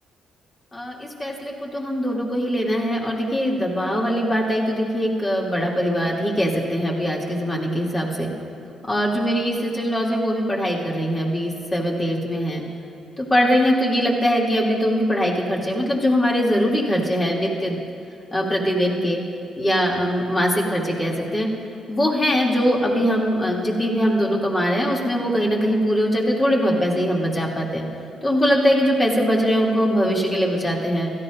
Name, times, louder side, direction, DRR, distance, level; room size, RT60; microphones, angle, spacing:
voice 1, 0.7-8.3 8.9-12.6 13.2-17.8 18.3-19.2 19.6-21.5 21.9-27.8 28.2-31.1, equal, 30° left, -3 dB, 2.8 m, -22 dB
16.5 x 13.0 x 2.6 m, 2.7 s
hypercardioid pair, 45°, 0 cm